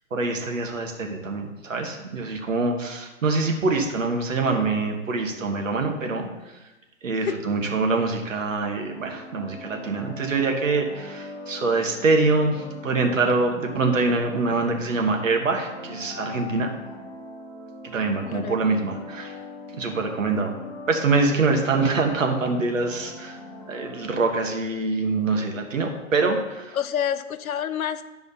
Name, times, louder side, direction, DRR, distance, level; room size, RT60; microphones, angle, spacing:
voice 1, 0.1-6.3 7.0-16.7 17.9-19.4 19.8-20.6 20.9-23.4 23.7-26.8, right 3 dB, 65° right, 3 dB, 1.6 m, -24 dB
voice 2, 7.1-7.4 18.3-18.6 26.7-28.0, left 9 dB, 85° left, 12 dB, 0.7 m, -28 dB
sound 1, 8.9-24.3, left 2 dB, 25° left, 0.7 m, -41 dB
12.0 x 4.9 x 4.1 m, 1.1 s
hypercardioid pair, 180°, 42 cm